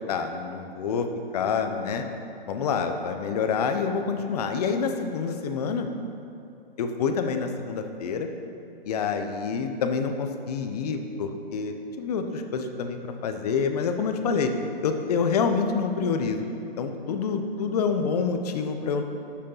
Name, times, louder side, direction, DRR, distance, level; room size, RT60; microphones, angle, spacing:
voice 1, 0.1-1.1 1.3-2.0 2.5-5.9 6.8-8.3 8.8-14.5 14.8-16.4 16.8-19.0, left 5 dB, 40° left, 6 dB, 0.9 m, -27 dB
10.5 x 6.6 x 5.6 m, 2.8 s
hypercardioid pair, 140°, 31 cm